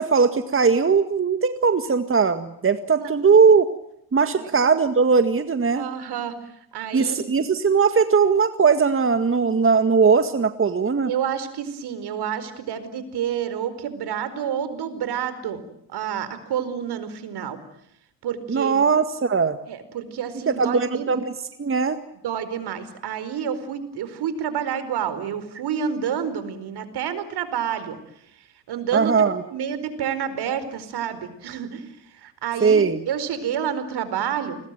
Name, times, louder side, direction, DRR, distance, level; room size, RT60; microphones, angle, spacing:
voice 1, 0.0-3.7 4.1-5.9 6.9-11.1 18.5-19.6 20.5-21.3 21.6-22.0 28.9-29.4 32.6-33.0, right 5 dB, 30° right, 9 dB, 2.0 m, -19 dB
voice 2, 5.7-6.4 6.7-7.2 11.1-15.6 15.9-17.6 18.2-18.8 19.7-21.2 22.2-28.0 28.7-29.2 29.5-34.6, right 8 dB, 65° right, 13 dB, 4.8 m, -29 dB
29.5 x 21.5 x 9.2 m, 0.75 s
supercardioid pair, 75°, 42 cm